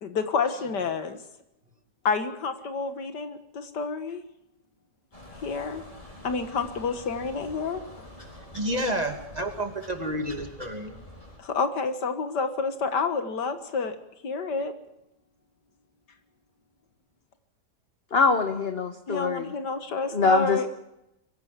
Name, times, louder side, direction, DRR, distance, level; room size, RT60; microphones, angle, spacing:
voice 1, 0.0-1.2 2.0-4.2 5.4-5.8 6.2-8.1 11.4-14.0 14.2-14.7 19.1-20.7, left 4 dB, 80° left, 9 dB, 2.2 m, -29 dB
sound 1, 5.1-11.4, left 1 dB, 20° left, 4.7 m, -46 dB
voice 2, 8.5-11.0, right 1 dB, 25° right, 5 dB, 2.3 m, -30 dB
voice 3, 18.1-19.5 20.1-20.7, left 4 dB, 40° left, 7 dB, 1.2 m, -23 dB
23.0 x 16.0 x 7.5 m, 0.85 s
omnidirectional pair, 1.8 m